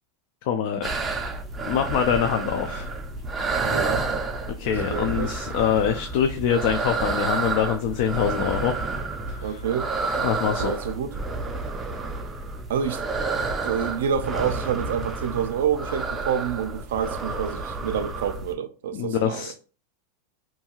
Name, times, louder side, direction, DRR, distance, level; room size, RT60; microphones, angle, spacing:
voice 1, 0.5-0.9 1.7-2.9 4.6-8.7 9.3-9.6 10.2-10.7 18.9-19.5, left 8 dB, 55° left, 0.3 m, -24 dB
sound 1, 0.8-18.5, right 3 dB, 15° right, 0.4 m, -30 dB
voice 2, 3.6-4.0 4.9-5.3 9.4-9.9 10.6-11.2 12.7-13.0 13.6-19.5, right 8 dB, 85° right, 0.4 m, -28 dB
2.6 x 2.3 x 2.9 m
supercardioid pair, 150°, 0 cm